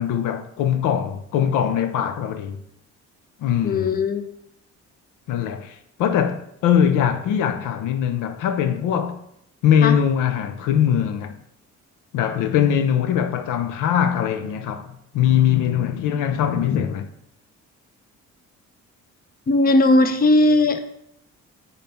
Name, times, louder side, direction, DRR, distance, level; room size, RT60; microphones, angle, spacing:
voice 1, 0.0-2.6 3.4-4.0 5.3-9.2 9.6-11.3 12.1-17.1, left 9 dB, 90° left, 0.6 m, -21 dB
voice 2, 3.6-4.3 9.8-10.0 19.5-20.8, left 2 dB, 30° left, 0.6 m, -18 dB
5.3 x 4.2 x 4.3 m
cardioid pair, 90°, 30 cm